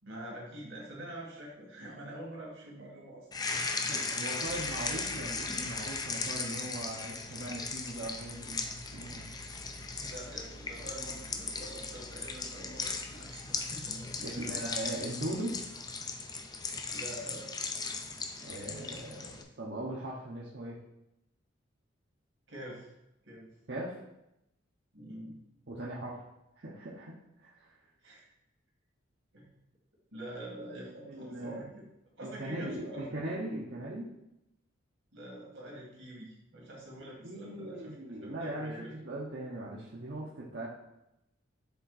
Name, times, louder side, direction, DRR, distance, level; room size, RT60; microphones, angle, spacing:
voice 1, 0.0-3.3 10.0-14.5 16.9-17.5 22.5-22.9 23.2-23.5 24.9-25.4 28.0-28.3 29.3-29.5 30.1-31.9 32.2-33.1 35.1-38.0 38.2-38.9, right 1 dB, 75° right, -3 dB, 2.3 m, -45 dB
sound 1, 3.3-19.4, left 4 dB, 20° left, 0.4 m, -37 dB
voice 2, 3.9-9.3 14.2-15.6 18.4-20.8 23.7-24.0 25.7-26.2 26.6-27.8 31.1-31.7 32.2-34.0 37.0-40.7, right 1 dB, 60° right, -5 dB, 0.9 m, -39 dB
sound 2, 4.4-14.7, right 1 dB, 90° left, 1.7 m, -53 dB
7.0 x 3.8 x 4.1 m, 0.86 s
head